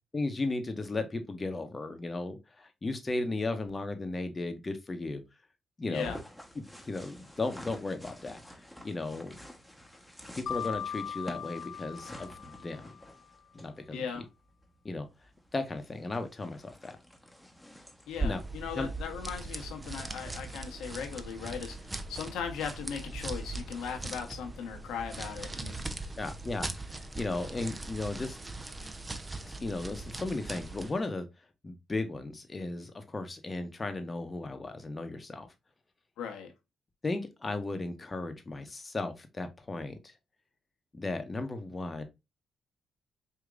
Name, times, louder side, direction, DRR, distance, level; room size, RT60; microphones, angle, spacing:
voice 1, 0.1-5.2 5.8-6.1 6.6-9.4 10.3-13.0 13.5-14.2 14.8-15.1 15.5-17.0 18.2-18.4 18.7-18.9 26.2-28.4 29.6-31.3 31.6-35.5 37.0-40.1 40.9-42.0, left 2 dB, 30° left, 0.9 m, -35 dB
voice 2, 5.9-6.2 13.9-14.3 18.1-25.8 36.2-36.5, left 7 dB, 90° left, 1.0 m, -38 dB
sound 1, 5.9-20.4, equal, 5° left, 1.0 m, -50 dB
Mallet percussion, 10.5-13.2, left 8 dB, 60° left, 0.6 m, -39 dB
sound 2, 18.1-31.0, right 2 dB, 20° right, 0.5 m, -40 dB
4.8 x 2.8 x 2.4 m
cardioid pair, 75°, 0 cm